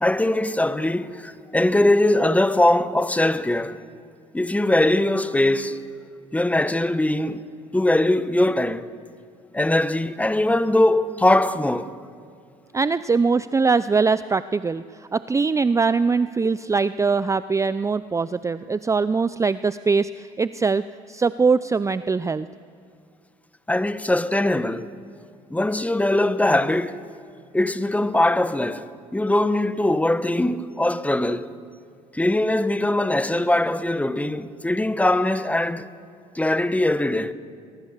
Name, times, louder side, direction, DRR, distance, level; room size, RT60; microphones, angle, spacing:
voice 1, 0.0-3.8 4.3-5.8 6.3-7.5 7.7-8.9 9.5-11.9 23.7-24.9 25.5-27.0 27.5-31.5 32.1-35.9 36.3-37.3, left 1 dB, 10° left, 1.1 m, -21 dB
voice 2, 12.7-22.5, right 4 dB, 20° right, 0.5 m, -22 dB
23.0 x 20.0 x 7.4 m
hypercardioid pair, 70°, 17 cm